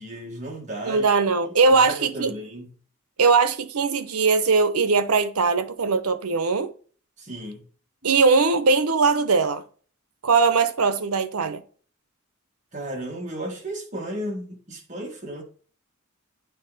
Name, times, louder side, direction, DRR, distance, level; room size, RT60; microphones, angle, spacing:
voice 1, 0.0-1.1 1.7-2.7 7.2-7.6 12.7-15.4, right 1 dB, 35° right, 1.7 m, -34 dB
voice 2, 0.8-2.3 3.2-6.7 8.0-9.6 10.2-11.6, right 4 dB, 90° right, 0.8 m, -20 dB
8.8 x 3.7 x 4.0 m
head